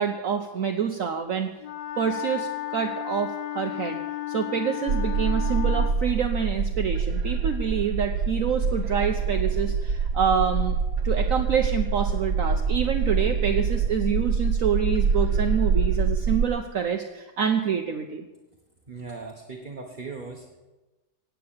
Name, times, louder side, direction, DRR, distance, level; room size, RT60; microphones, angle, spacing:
voice 1, 0.0-1.5 2.0-4.0 4.3-10.8 11.0-18.2, right 7 dB, 60° right, 5 dB, 1.1 m, -27 dB
Wind instrument woodwind instrument, 1.6-6.0, left 14 dB, 80° left, 1.4 m, -33 dB
sound 1, 4.9-16.4, right 5 dB, 75° right, 1.4 m, -25 dB
voice 2, 18.9-20.6, right 4 dB, 30° right, 1 dB, 1.4 m, -38 dB
17.5 x 8.8 x 7.2 m, 1.1 s
omnidirectional pair, 1.8 m